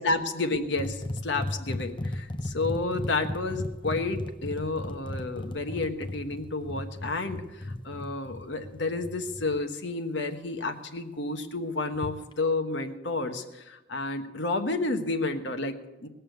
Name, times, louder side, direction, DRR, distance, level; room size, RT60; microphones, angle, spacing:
voice 1, 0.0-16.1, left 3 dB, 65° left, 7 dB, 1.3 m, -31 dB
sound 1, 0.8-9.6 11.9-12.3, left 1 dB, 25° left, 0.7 m, -36 dB
19.5 x 6.9 x 8.0 m, 1.0 s
head